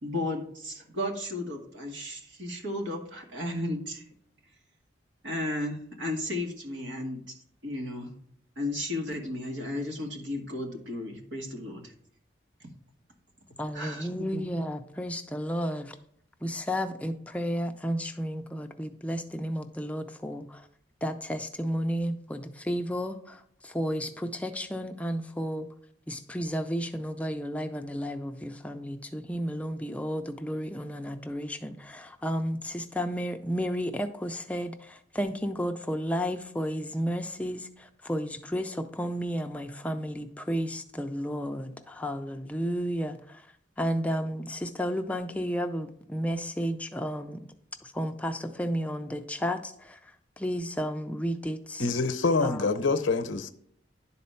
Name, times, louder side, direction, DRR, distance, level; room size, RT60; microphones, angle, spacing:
voice 1, 0.0-4.0 5.2-7.2 7.6-8.1 8.6-11.9 13.7-14.5, left 1 dB, 80° right, 2.0 m, -34 dB
voice 2, 13.6-16.0 16.4-20.6 21.0-25.7 26.1-43.4 43.8-47.4 47.8-50.0 50.4-51.8 52.4-52.6, equal, 5° left, 0.5 m, -32 dB
voice 3, 51.8-53.5, left 3 dB, 85° left, 0.7 m, -26 dB
11.0 x 4.2 x 5.6 m
head